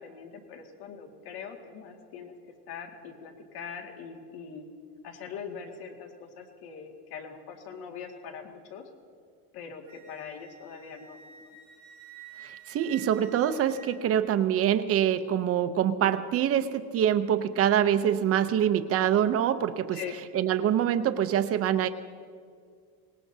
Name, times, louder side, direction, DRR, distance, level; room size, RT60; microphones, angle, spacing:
voice 1, 0.0-2.3 2.7-4.6 5.0-8.8 9.5-11.2 11.4-11.5 19.9-20.2, left 6 dB, 50° left, 3 dB, 2.1 m, -42 dB
Wind instrument woodwind instrument, 9.9-14.4, right 7 dB, 45° right, 4.8 m, -50 dB
voice 2, 12.4-20.0 20.3-21.9, right 10 dB, 30° right, 9 dB, 0.6 m, -25 dB
24.5 x 19.0 x 2.7 m, 2.1 s
cardioid pair, 150°, 47 cm